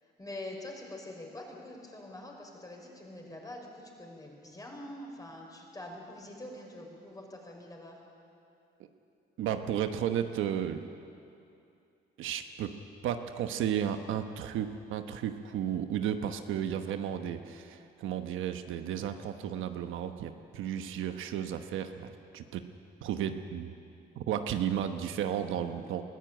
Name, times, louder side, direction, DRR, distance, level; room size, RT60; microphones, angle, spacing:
voice 1, 0.0-8.0, left 1 dB, 20° left, 0 dB, 5.2 m, -45 dB
voice 2, 9.4-10.8 12.2-12.7 13.0-22.6 23.0-23.7 24.2-26.0, right 9 dB, 85° right, 7 dB, 1.1 m, -33 dB
21.0 x 15.0 x 9.1 m, 2.6 s
cardioid pair, 90°, 20 cm